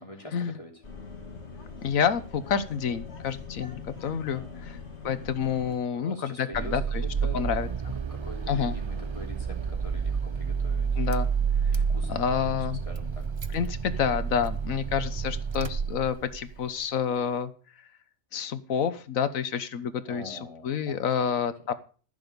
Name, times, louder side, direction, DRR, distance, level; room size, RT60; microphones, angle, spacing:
voice 1, 0.0-0.8 4.3-4.8 5.9-7.7 8.1-11.3 11.7-13.2 20.1-21.3, left 1 dB, 25° left, 1 dB, 3.3 m, -44 dB
sound 1, 0.8-5.7, left 5 dB, 55° left, 2.7 m, -42 dB
voice 2, 1.8-4.8 5.0-7.0 7.3-7.7 8.5-8.7 11.0-11.3 12.1-12.8 13.5-17.5 18.3-20.4 20.6-21.7, left 7 dB, 90° left, 13 dB, 1.5 m, -28 dB
Car / Engine starting, 6.5-16.6, right 6 dB, 40° right, 0.4 m, -30 dB
14.5 x 7.1 x 6.9 m, 0.40 s
omnidirectional pair, 1.4 m